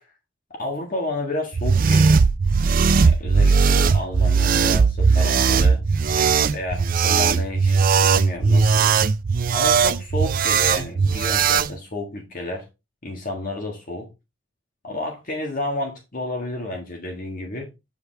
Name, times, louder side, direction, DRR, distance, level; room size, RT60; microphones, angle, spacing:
voice 1, 0.6-2.2 3.0-5.8 6.5-8.9 9.5-12.7 13.0-14.1 14.8-17.7, left 2 dB, 45° left, 1.6 m, -31 dB
sound 1, 1.5-11.7, right 5 dB, 45° right, 0.4 m, -18 dB
8.1 x 5.0 x 3.4 m
head